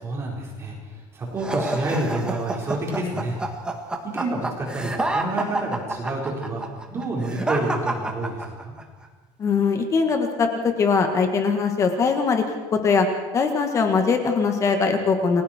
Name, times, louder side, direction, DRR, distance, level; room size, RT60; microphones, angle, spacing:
voice 1, 0.0-3.4 4.1-6.6 6.9-8.8, right 2 dB, 25° right, -2 dB, 4.6 m, -29 dB
sound 1, 1.4-8.8, right 2 dB, 10° right, 1.8 m, -28 dB
voice 2, 9.4-12.4 12.7-13.1 13.3-15.4, left 5 dB, 30° left, 5 dB, 1.9 m, -21 dB
30.0 x 20.5 x 4.6 m, 1.2 s
cardioid pair, 170°, 11 cm